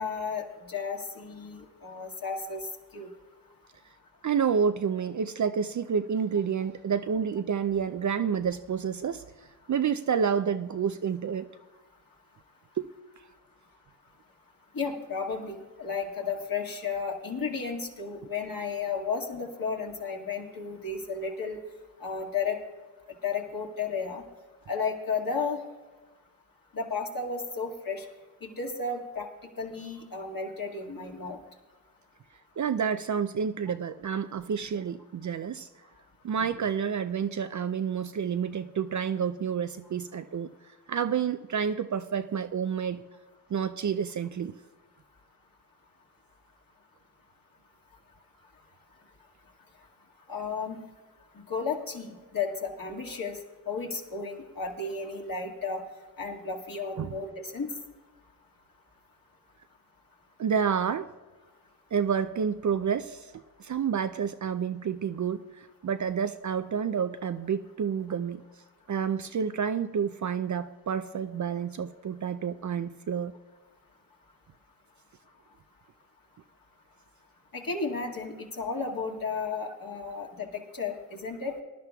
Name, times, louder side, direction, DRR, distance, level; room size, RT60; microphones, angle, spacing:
voice 1, 0.0-2.7 2.9-3.1 14.7-21.6 22.0-22.6 23.2-24.2 24.7-25.6 26.7-28.1 28.4-29.3 29.6-31.4 50.3-50.8 51.5-53.4 53.7-55.8 56.2-57.7 77.5-81.6, left 5 dB, 50° left, 0 dB, 2.0 m, -33 dB
voice 2, 4.2-9.2 9.7-11.5 12.8-12.9 32.6-35.7 36.2-40.5 40.9-43.0 43.5-44.5 57.0-57.2 60.4-61.1 61.9-63.3 63.6-68.4 68.9-73.3, right 7 dB, 45° right, 11 dB, 0.5 m, -29 dB
19.5 x 11.0 x 2.3 m, 1.3 s
supercardioid pair, 40°, 44 cm